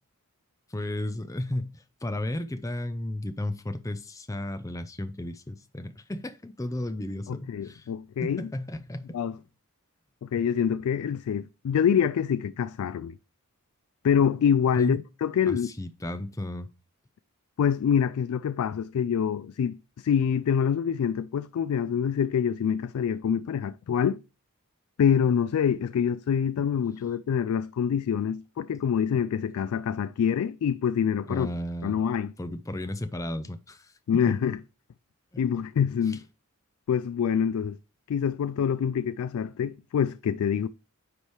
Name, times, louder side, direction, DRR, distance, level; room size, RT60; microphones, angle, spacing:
voice 1, 0.7-7.9 8.2-9.2 14.8-15.0 15.5-16.7 31.3-32.0 32.4-33.9 34.3-34.4 35.3-35.4 36.1-36.2, left 1 dB, 15° left, 0.5 m, -34 dB
voice 2, 7.3-8.5 9.1-9.4 10.2-13.1 14.0-15.7 17.6-24.2 25.0-31.5 31.8-32.3 34.1-34.6 35.4-36.2 36.9-37.8 38.1-40.7, left 8 dB, 70° left, 0.3 m, -26 dB
9.6 x 3.4 x 4.5 m
head